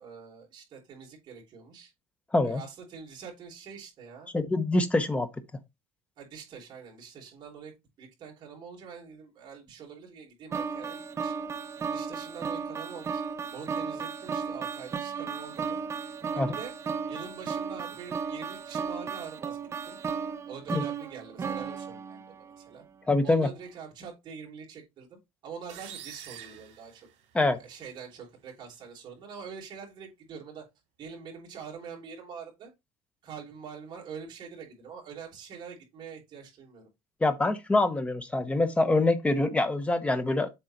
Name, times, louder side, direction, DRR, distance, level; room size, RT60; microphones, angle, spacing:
voice 1, 0.0-1.9 2.4-4.3 6.2-7.7 8.0-11.3 11.8-13.2 13.5-15.8 16.3-16.7 17.1-19.6 19.9-20.0 20.5-22.8 23.2-27.1 27.6-30.6 31.0-32.7 33.2-36.9, right 6 dB, 40° right, 3.8 m, -45 dB
voice 2, 4.3-5.3 16.4-16.5 20.7-20.8 23.1-23.5 27.3-27.6 37.2-40.5, left 2 dB, 10° left, 0.9 m, -25 dB
sound 1, 10.5-22.7, right 6 dB, 25° right, 0.6 m, -35 dB
sound 2, 25.7-27.6, right 10 dB, 70° right, 3.1 m, -46 dB
7.8 x 4.1 x 4.4 m
cardioid pair, 150°, 12 cm